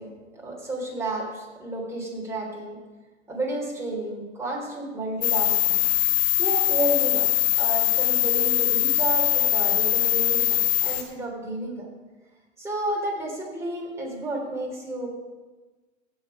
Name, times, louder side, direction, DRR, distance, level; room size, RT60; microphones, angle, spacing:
voice 1, 0.0-2.8 3.3-5.9 6.4-7.3 7.6-11.9 12.6-15.1, right 1 dB, 5° right, -3 dB, 3.2 m, -31 dB
sound 1, 5.2-11.0, left 14 dB, 55° left, 1.6 m, -22 dB
16.0 x 6.6 x 5.3 m, 1.3 s
hypercardioid pair, 120°, 38 cm